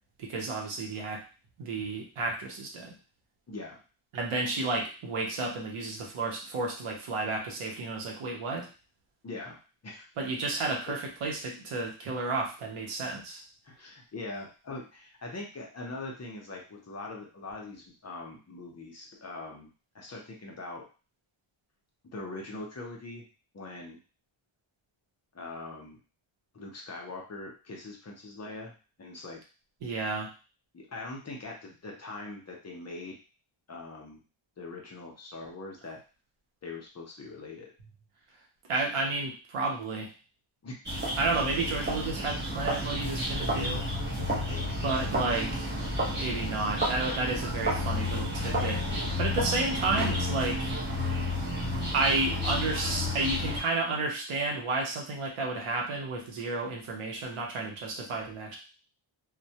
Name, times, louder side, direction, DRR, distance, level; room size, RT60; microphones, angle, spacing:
voice 1, 0.2-1.2 1.6-3.0 4.1-8.7 10.2-13.4 29.8-30.3 38.7-40.1 41.2-43.9 44.8-45.7 46.2-50.7 51.9-58.6, right 3 dB, 80° right, 0 dB, 0.8 m, -31 dB
voice 2, 3.5-3.8 9.2-9.6 9.8-10.1 10.9-11.0 13.6-19.7 19.9-20.8 22.1-23.3 23.5-24.0 25.3-26.0 26.5-28.7 29.0-29.4 30.7-33.2 33.7-34.2 34.6-36.0 36.6-37.7 40.6-40.8 44.4-44.8, left 2 dB, 35° left, -1 dB, 0.5 m, -42 dB
sound 1, 40.9-53.6, left 1 dB, 20° right, 0.7 m, -31 dB
2.1 x 2.1 x 2.7 m, 0.34 s
wide cardioid pair, 175°, 50 cm